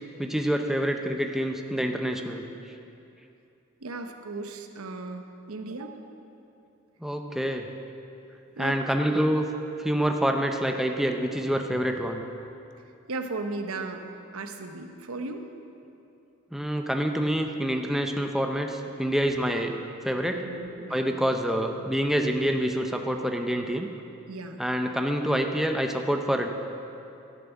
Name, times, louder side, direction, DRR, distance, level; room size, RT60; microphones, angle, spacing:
voice 1, 0.2-2.4 7.0-7.7 8.6-9.5 9.8-12.2 16.5-19.8 20.0-20.4 20.9-23.9 24.6-26.5, equal, ahead, 4 dB, 0.6 m, -26 dB
voice 2, 3.8-6.1 8.6-8.8 13.1-14.0 14.3-15.5 20.4-21.3 24.3-24.6, right 3 dB, 85° right, 6 dB, 0.9 m, -36 dB
12.0 x 7.2 x 7.2 m, 2.7 s
head